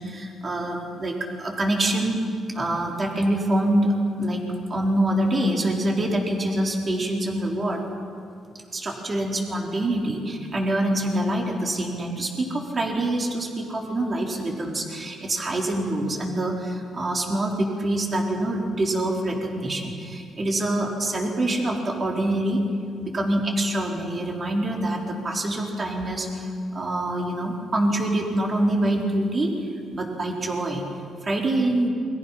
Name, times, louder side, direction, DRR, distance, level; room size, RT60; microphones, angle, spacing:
voice 1, 0.0-2.2 2.5-3.9 4.2-4.4 4.7-7.8 8.7-22.6 23.0-29.5 29.9-30.8 31.2-31.9, right 1 dB, 35° right, 0 dB, 4.2 m, -25 dB
28.5 x 23.0 x 6.0 m, 2.3 s
cardioid pair, 90°, 0 cm